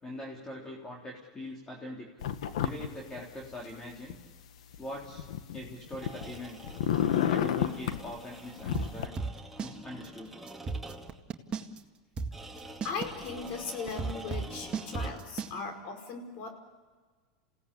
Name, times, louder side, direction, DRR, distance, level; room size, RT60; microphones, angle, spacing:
voice 1, 0.0-2.1 2.6-4.2 4.8-5.3 5.5-6.6 7.2-9.2 9.6-10.4, left 1 dB, 15° left, -2 dB, 3.7 m, -42 dB
sound 1, 2.2-2.9 3.2-4.1 4.7-6.4 6.6-8.0 8.6-9.1, left 10 dB, 80° left, 1.6 m, -30 dB
sound 2, 5.9-11.3 12.3-15.4, right 2 dB, 5° right, 2.3 m, -47 dB
sound 3, 8.7-9.7 10.0-10.1 10.5-11.8 12.2-15.5, right 4 dB, 30° right, 1.9 m, -34 dB
voice 2, 12.8-16.5, left 5 dB, 55° left, 5 dB, 5.1 m, -38 dB
28.5 x 17.0 x 8.5 m, 1.4 s
hypercardioid pair, 110°, 3 cm